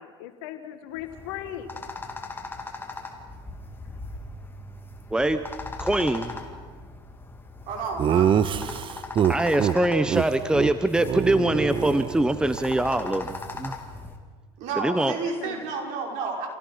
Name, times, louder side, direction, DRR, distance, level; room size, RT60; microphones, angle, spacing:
voice 1, 0.0-1.7 15.2-15.6, left 11 dB, 75° left, 8 dB, 1.9 m, -38 dB
sound 1, 1.0-14.2, left 3 dB, 15° left, 2.9 m, -39 dB
voice 2, 5.1-5.4 5.8-6.3 9.3-13.8 14.8-15.1, right 1 dB, 5° right, 11 dB, 1.0 m, -23 dB
voice 3, 7.7-8.3 14.6-16.5, right 4 dB, 65° right, 0 dB, 5.7 m, -31 dB
Laughter, 8.0-9.8 10.1-10.2 10.5-10.7 11.0-12.6, right 9 dB, 40° right, 0.9 m, -24 dB
28.0 x 17.5 x 5.8 m, 1.5 s
hypercardioid pair, 80°, 13 cm